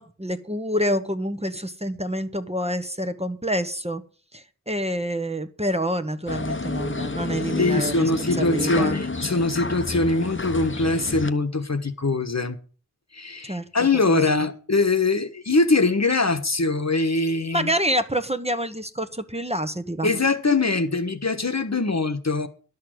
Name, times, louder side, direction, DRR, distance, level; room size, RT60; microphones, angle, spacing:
voice 1, 0.0-4.0 4.3-9.0 13.4-13.6 14.1-14.2 17.5-20.1, equal, 20° right, 1.0 m, -27 dB
sound 1, 6.3-11.3, left 3 dB, 35° left, 0.9 m, -30 dB
voice 2, 7.6-12.6 13.1-17.7 20.0-22.5, left 3 dB, 55° left, 1.2 m, -22 dB
11.5 x 6.4 x 7.8 m
wide cardioid pair, 50°, 33 cm